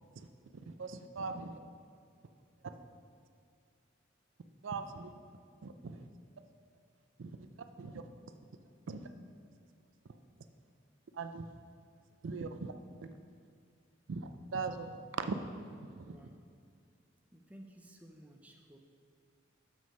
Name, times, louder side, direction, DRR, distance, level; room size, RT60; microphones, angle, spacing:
voice 1, 0.7-1.6 4.6-5.1 5.6-6.1 7.2-7.5 7.8-8.0 8.9-9.1 11.1-11.5 12.2-12.7 13.0-13.1 14.1-16.2, right 4 dB, 80° right, 9 dB, 0.4 m, -40 dB
voice 2, 16.0-16.4 17.3-18.8, right 1 dB, 5° right, 2 dB, 0.5 m, -55 dB
7.1 x 6.1 x 5.5 m, 2.2 s
head